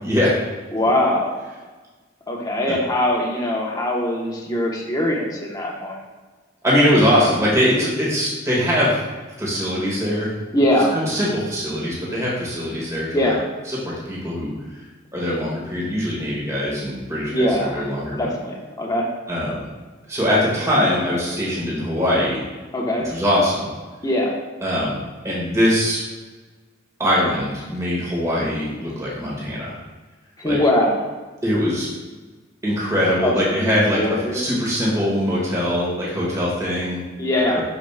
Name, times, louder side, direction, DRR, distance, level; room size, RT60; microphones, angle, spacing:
voice 1, 0.0-0.4 6.6-9.0 9.4-10.3 10.9-13.3 13.7-14.5 15.1-18.3 19.3-19.6 20.1-22.4 23.0-23.7 24.6-25.0 25.2-26.0 27.0-29.8 30.4-30.6 31.4-31.9 32.6-37.0 37.5-37.6, equal, 15° right, -5 dB, 2.0 m, -22 dB
voice 2, 0.7-1.3 2.3-5.9 10.5-10.9 13.1-13.4 17.3-17.8 18.2-19.1 22.7-23.1 24.0-24.3 30.4-31.0 33.2-33.3 33.6-34.4 37.2-37.6, left 1 dB, 20° left, -2 dB, 1.3 m, -21 dB
11.5 x 5.2 x 2.5 m, 1.3 s
head